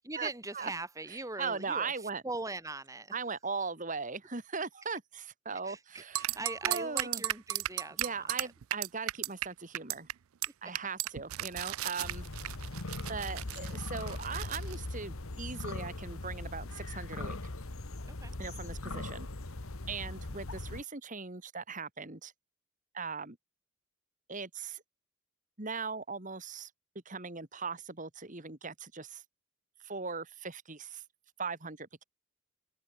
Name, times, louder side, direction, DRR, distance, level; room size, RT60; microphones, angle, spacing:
voice 1, 0.1-3.2 5.6-8.5 18.1-18.3, right 2 dB, 15° right, 2.1 m, -41 dB
voice 2, 1.4-2.2 3.1-6.4 6.6-7.2 8.0-10.1 10.6-12.2 13.1-17.4 18.4-19.3 19.9-22.3 22.9-23.4 24.3-24.8 25.6-26.7 27.1-29.2 29.8-31.0 31.4-32.0, right 4 dB, 40° right, 2.5 m, -39 dB
sound 1, 6.1-9.5 9.7-10.1 10.4-10.5 10.7-14.7, right 15 dB, 90° right, 0.4 m, -35 dB
sound 2, 12.0-20.8, left 2 dB, 90° left, 1.6 m, -40 dB
head